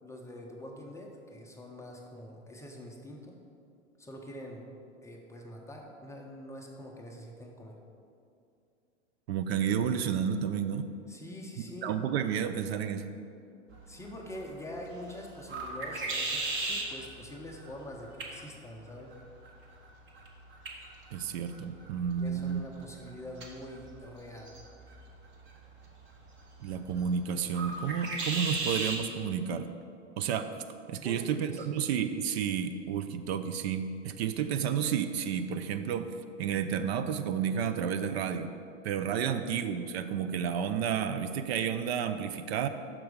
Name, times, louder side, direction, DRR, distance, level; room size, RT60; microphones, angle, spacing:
voice 1, 0.0-3.4 4.0-4.7 5.0-7.8 11.1-12.0 13.9-19.1 22.2-24.6 31.0-31.7 39.3-39.5, left 1 dB, 10° left, 0 dB, 0.5 m, -45 dB
voice 2, 9.3-10.9 11.8-13.1 21.1-22.8 26.6-29.7 30.2-30.5 30.9-36.1 36.4-38.5 38.8-42.7, right 8 dB, 55° right, 9 dB, 0.5 m, -31 dB
sound 1, 13.7-29.0, right 2 dB, 30° right, 1.2 m, -39 dB
6.0 x 4.5 x 6.5 m, 2.5 s
hypercardioid pair, 110°, 37 cm